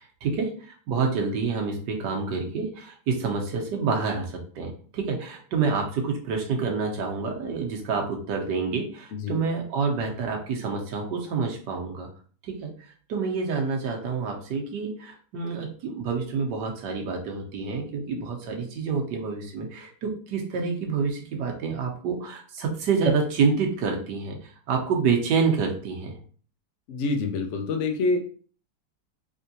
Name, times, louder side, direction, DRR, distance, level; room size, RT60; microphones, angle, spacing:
voice 1, 0.0-12.1 12.4-12.7 13.1-26.2, right 5 dB, 80° right, 2 dB, 1.4 m, -28 dB
voice 2, 26.9-28.2, left 3 dB, 75° left, 4 dB, 0.7 m, -26 dB
3.6 x 3.4 x 2.7 m, 0.43 s
omnidirectional pair, 1.8 m